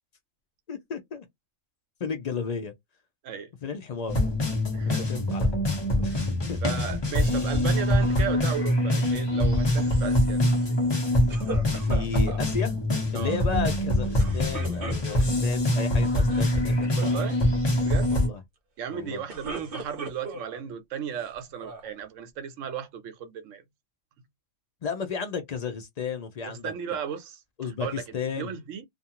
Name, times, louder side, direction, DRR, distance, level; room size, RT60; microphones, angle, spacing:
voice 1, 0.7-1.3 2.0-2.7 3.6-4.2 4.8-5.5 6.0-6.1 6.5-6.6 11.7-12.8 13.1-16.9 18.1-18.4 18.9-19.2 24.8-26.7 27.6-28.6, left 5 dB, 65° left, 0.4 m, -33 dB
sound 1, 4.1-18.3, left 1 dB, 20° left, 0.9 m, -24 dB
voice 2, 4.7-5.0 6.6-10.8 13.1-13.4 16.9-17.4 17.8-18.2 18.8-23.6 26.4-27.4 27.8-28.0 28.4-28.8, right 8 dB, 80° right, 1.0 m, -35 dB
sound 2, 11.3-12.4 14.2-15.5 16.2-16.5 16.8-17.2 19.0-20.6 21.2-21.9, right 3 dB, 50° right, 0.8 m, -38 dB
2.5 x 2.3 x 2.8 m
omnidirectional pair, 1.3 m